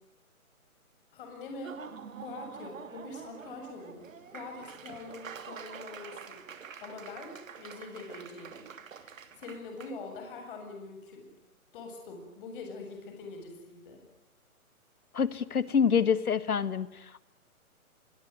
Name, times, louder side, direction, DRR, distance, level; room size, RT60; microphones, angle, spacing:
voice 1, 1.1-1.8 2.2-6.4 6.8-11.3 11.7-14.1, left 3 dB, 35° left, 4 dB, 7.7 m, -44 dB
Laughter / Applause, 1.5-9.9, right 7 dB, 65° right, 3.0 m, -46 dB
voice 2, 15.1-16.9, left 6 dB, 80° left, 15 dB, 1.9 m, -26 dB
26.5 x 23.5 x 9.6 m, 0.82 s
hypercardioid pair, 155°, 43 cm